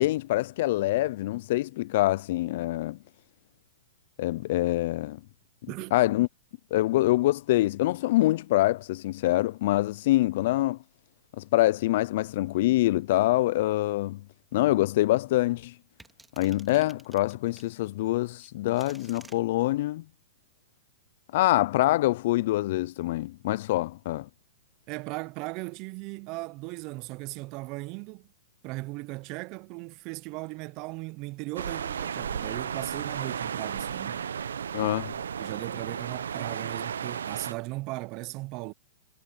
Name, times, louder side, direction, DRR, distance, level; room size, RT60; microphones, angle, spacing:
voice 1, 0.0-3.0 4.2-5.2 5.9-6.3 6.7-10.8 11.4-14.2 14.5-15.7 16.4-20.0 21.3-24.3 34.7-35.1, left 16 dB, 55° left, 0.4 m, -25 dB
voice 2, 5.7-6.0 24.9-28.3 28.6-34.3 35.4-38.7, right 24 dB, 40° right, 0.7 m, -37 dB
sound 1, 16.0-17.7 18.4-19.4, right 3 dB, 5° right, 2.3 m, -52 dB
sound 2, 31.6-37.5, right 7 dB, 85° right, 1.0 m, -34 dB
hypercardioid pair, 130°, 0 cm